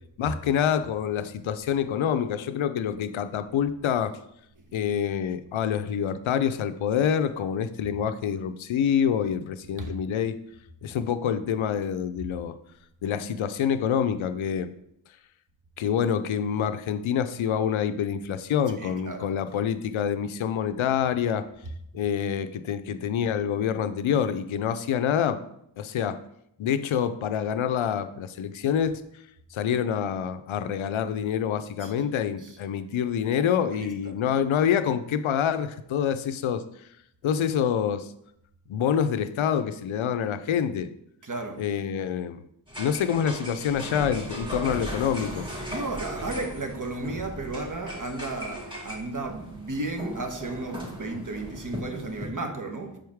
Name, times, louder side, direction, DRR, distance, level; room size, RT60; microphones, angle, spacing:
voice 1, 0.2-4.2 4.7-10.4 10.8-12.6 13.0-14.7 15.8-21.5 21.9-25.4 25.8-26.2 26.6-29.0 29.5-36.6 37.2-38.1 38.7-40.9 41.6-42.4 42.8-45.5 51.1-51.2, left 8 dB, 80° left, 0.6 m, -26 dB
voice 2, 18.8-19.3 31.8-31.9 32.4-32.5 33.4-34.1 41.2-41.6 45.7-53.0, right 2 dB, 40° right, 1.2 m, -34 dB
sound 1, 42.7-52.3, equal, 10° right, 2.1 m, -37 dB
7.0 x 4.7 x 3.5 m
cardioid pair, 45°, 47 cm